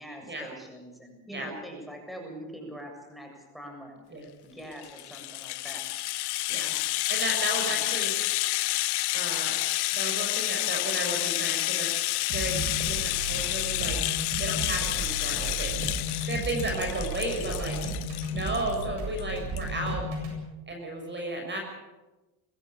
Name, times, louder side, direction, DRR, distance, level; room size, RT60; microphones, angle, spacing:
voice 1, 0.0-4.2 4.4-5.9 7.5-7.8 17.2-17.7, right 1 dB, ahead, 2 dB, 7.4 m, -43 dB
Rattle (instrument), 4.7-18.8 19.2-19.3 19.6-19.7, left 19 dB, 60° left, 0.7 m, -29 dB
voice 2, 7.1-8.1 9.1-9.6 9.9-11.9 12.3-12.6 12.9-14.0 14.4-15.9 16.3-17.8 18.3-20.1 20.7-21.6, right 1 dB, 25° right, 2 dB, 6.4 m, -33 dB
sound 1, 12.3-20.4, right 1 dB, 70° right, 7.8 m, -34 dB
23.5 x 15.5 x 8.6 m, 1.1 s
cardioid pair, 110°, 43 cm